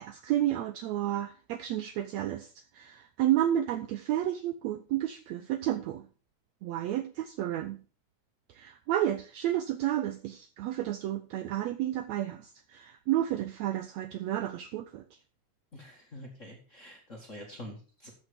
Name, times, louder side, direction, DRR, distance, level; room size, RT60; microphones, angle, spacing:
voice 1, 0.0-6.1 6.6-7.8 8.5-15.0, right 12 dB, 90° right, 10 dB, 1.5 m, -31 dB
voice 2, 15.7-18.1, left 1 dB, 35° left, 0 dB, 1.3 m, -46 dB
13.5 x 5.8 x 5.0 m, 0.37 s
omnidirectional pair, 3.9 m